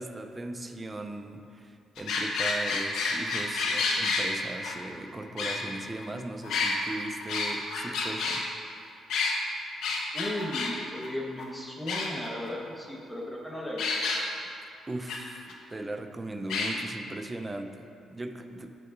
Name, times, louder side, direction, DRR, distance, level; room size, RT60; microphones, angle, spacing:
voice 1, 0.0-8.5 14.9-15.4 15.7-18.8, right 2 dB, 20° right, 6 dB, 0.7 m, -38 dB
sound 1, 2.0-4.3 4.6-4.7 5.4-6.0 6.4-8.4 9.1-9.3 9.8-10.7 11.0-11.1 11.4-11.5 11.9-12.5 13.8-14.2 15.1-15.2 15.5-15.6 16.5-16.7, left 4 dB, 80° left, 1.1 m, -29 dB
voice 2, 10.1-14.1, left 1 dB, 5° left, -3 dB, 1.3 m, -36 dB
15.5 x 6.0 x 2.6 m, 2.5 s
cardioid pair, 90°, 0 cm